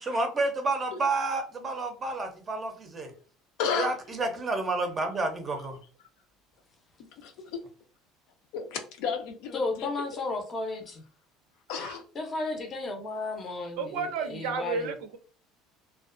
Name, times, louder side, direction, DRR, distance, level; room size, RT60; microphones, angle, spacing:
voice 1, 0.0-3.1 3.7-5.8, right 3 dB, 20° right, 5 dB, 0.5 m, -30 dB
voice 2, 3.6-3.9 7.1-7.7 8.5-10.1 11.7-12.0, left 6 dB, 70° left, 6 dB, 0.5 m, -33 dB
voice 3, 9.5-11.0 12.2-14.9, left 3 dB, 25° left, 4 dB, 0.6 m, -33 dB
voice 4, 13.8-15.2, right 5 dB, 80° right, 8 dB, 0.5 m, -32 dB
2.5 x 2.2 x 2.4 m, 0.39 s
cardioid pair, 160°, 0 cm